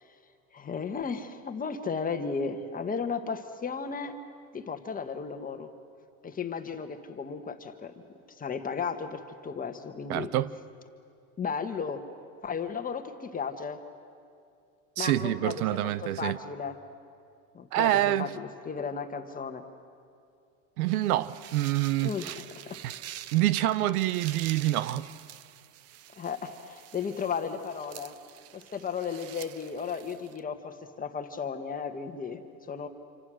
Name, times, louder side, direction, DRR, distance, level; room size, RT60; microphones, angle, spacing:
voice 1, 0.5-4.1 4.5-5.7 6.2-10.3 11.4-12.0 12.4-13.8 15.0-16.8 17.5-19.6 22.0-22.3 22.6-22.8 26.1-28.1 28.5-32.4 32.7-32.9, left 5 dB, 20° left, 1.4 m, -34 dB
voice 2, 10.1-10.5 15.0-16.4 17.7-18.3 20.8-22.4 23.3-25.1, right 14 dB, 80° right, 0.9 m, -26 dB
sound 1, 20.9-30.4, right 12 dB, 35° right, 0.7 m, -46 dB
27.0 x 25.5 x 6.4 m
supercardioid pair, 125°, 43 cm